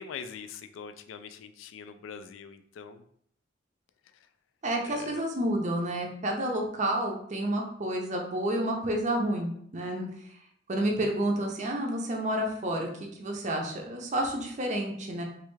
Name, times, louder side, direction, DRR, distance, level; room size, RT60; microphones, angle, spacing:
voice 1, 0.0-3.0 4.8-5.2, left 6 dB, 90° left, 9 dB, 0.3 m, -43 dB
voice 2, 4.6-10.1 10.7-12.9 13.2-15.2, right 1 dB, 40° right, 1 dB, 0.5 m, -30 dB
3.2 x 2.3 x 3.1 m, 0.66 s
head